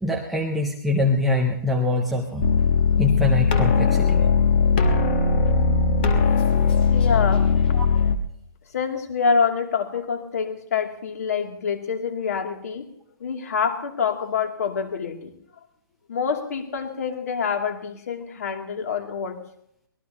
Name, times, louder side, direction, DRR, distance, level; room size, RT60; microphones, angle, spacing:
voice 1, 0.0-2.5 3.0-4.3 7.7-7.9, left 2 dB, ahead, -2 dB, 0.5 m, -24 dB
sound 1, 2.4-8.2, left 5 dB, 25° left, 1.2 m, -19 dB
voice 2, 6.9-7.5 8.7-12.9 13.2-15.3 16.1-19.4, left 6 dB, 40° left, 4 dB, 2.6 m, -26 dB
24.0 x 19.5 x 2.8 m, 0.71 s
hypercardioid pair, 175°, 13 cm